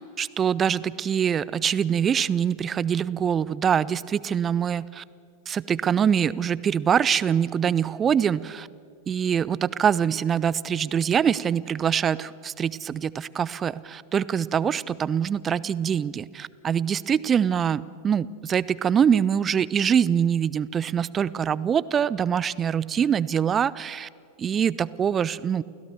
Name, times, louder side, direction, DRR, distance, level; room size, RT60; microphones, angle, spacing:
voice 1, 0.0-5.0 5.5-8.7 9.1-24.1 24.4-25.6, right 8 dB, 25° right, 19 dB, 0.5 m, -24 dB
29.0 x 16.0 x 7.0 m, 2.2 s
figure-of-eight pair, 90°, 0 cm